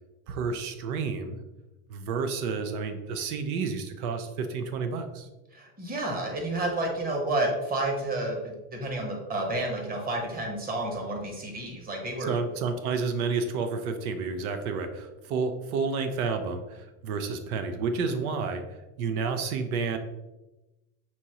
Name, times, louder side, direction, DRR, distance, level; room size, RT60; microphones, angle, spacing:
voice 1, 0.3-1.4 1.9-5.3 12.2-20.0, right 5 dB, 90° right, 7 dB, 0.7 m, -30 dB
voice 2, 5.5-12.3, right 2 dB, 20° right, 1 dB, 1.0 m, -30 dB
6.1 x 2.8 x 2.8 m, 1.0 s
supercardioid pair, 130°, 42 cm